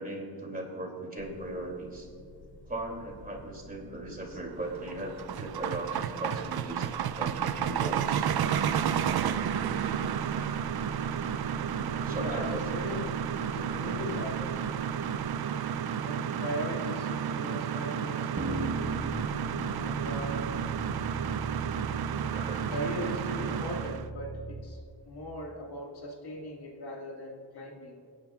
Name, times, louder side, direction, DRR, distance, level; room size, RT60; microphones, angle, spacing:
voice 1, 0.0-2.1 2.7-6.9 7.1-8.3 11.5-12.9 13.7-14.0 22.3-22.6, right 2 dB, 20° right, 0 dB, 2.6 m, -38 dB
sound 1, 1.2-15.2, left 1 dB, 30° left, 2.6 m, -49 dB
sound 2, 4.7-24.1, right 8 dB, 65° right, 0.5 m, -32 dB
voice 2, 12.1-13.1 13.5-14.5 16.0-18.9 19.7-20.5 22.7-24.8 25.0-28.0, left 1 dB, 70° left, -1 dB, 1.9 m, -39 dB
sound 3, 18.4-24.6, right 2 dB, 40° right, 1.4 m, -38 dB
25.5 x 10.5 x 2.4 m, 2.2 s
wide cardioid pair, 95°, 40 cm